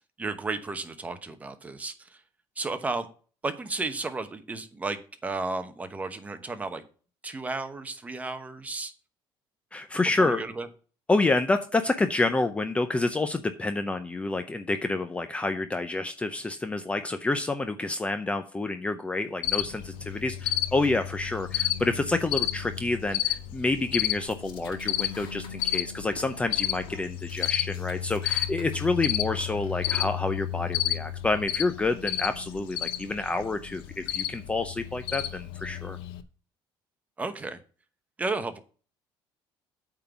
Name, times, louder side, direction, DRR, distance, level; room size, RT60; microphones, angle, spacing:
voice 1, 0.2-2.2 2.6-3.1 3.4-6.8 7.2-8.9 10.2-10.7 37.2-37.6 38.2-38.6, right 3 dB, 15° right, 9 dB, 1.0 m, -33 dB
voice 2, 9.7-10.4 11.1-36.0, left 2 dB, 15° left, 8 dB, 0.6 m, -28 dB
Cricket, 19.4-36.2, left 13 dB, 90° left, 0.8 m, -32 dB
sound 1, 24.3-25.8 26.1-27.0 27.3-28.9 29.3-30.1, left 8 dB, 65° left, 1.9 m, -48 dB
8.6 x 3.9 x 7.0 m, 0.38 s
cardioid pair, 140°, 9 cm